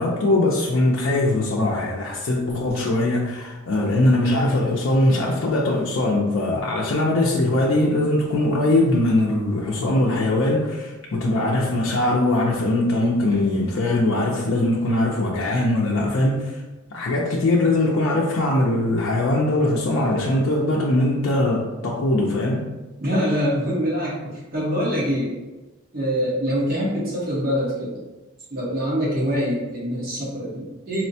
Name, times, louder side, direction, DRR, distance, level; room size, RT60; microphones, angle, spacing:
voice 1, 0.0-16.6 16.9-22.6, left 1 dB, 85° left, -3 dB, 0.5 m, -21 dB
voice 2, 23.0-25.4 25.9-28.0 28.5-31.1, equal, 45° right, -5 dB, 1.1 m, -24 dB
4.2 x 2.1 x 2.7 m, 1.1 s
head